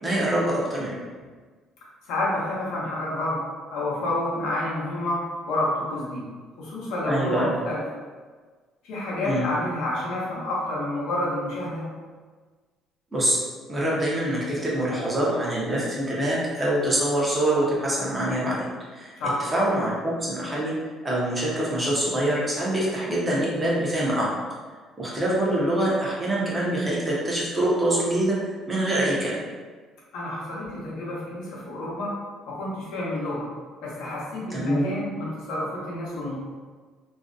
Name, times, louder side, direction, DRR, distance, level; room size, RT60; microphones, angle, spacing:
voice 1, 0.0-0.9 7.1-7.5 9.2-9.4 13.1-13.4 13.7-18.6 18.9-19.1 19.5-20.7 21.0-24.3 25.0-28.4 28.7-29.4 34.5-34.9, right 1 dB, 15° right, -6 dB, 0.5 m, -24 dB
voice 2, 2.1-3.4 3.7-6.2 6.6-7.8 8.8-11.9 19.2-19.4 30.1-32.1 32.5-33.5 33.8-36.4, left 1 dB, 90° left, -5 dB, 0.7 m, -29 dB
2.4 x 2.1 x 2.5 m, 1.5 s
cardioid pair, 160°, 0 cm